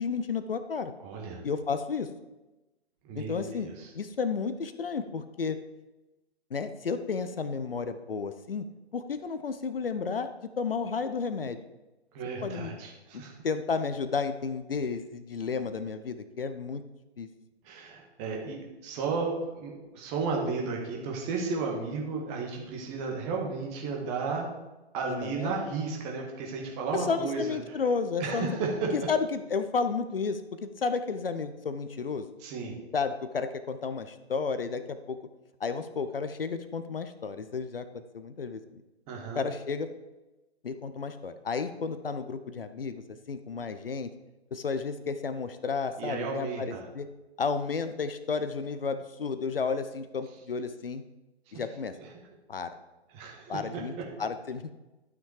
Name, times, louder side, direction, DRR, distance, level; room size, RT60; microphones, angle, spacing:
voice 1, 0.0-0.9 1.4-2.1 3.1-3.7 3.9-5.6 6.5-8.6 8.9-11.6 12.4-12.7 13.1-16.8 17.2-17.3 25.1-25.5 26.9-28.6 28.9-32.3 32.9-35.2 35.6-38.6 39.3-39.9 40.6-44.1 44.5-47.1 47.4-51.0 51.5-52.0 52.5-52.7 53.5-53.9 54.2-54.7, left 5 dB, 60° left, 11 dB, 0.8 m, -32 dB
voice 2, 1.0-1.4 3.0-3.9 12.1-13.3 17.6-24.5 24.9-27.6 28.2-29.1 32.4-32.8 39.1-39.5 46.0-46.8 51.5-51.6 52.0-52.1 53.1-54.0, right 4 dB, 20° right, 0 dB, 1.6 m, -33 dB
11.5 x 6.0 x 4.9 m, 1.1 s
figure-of-eight pair, 130°, 32 cm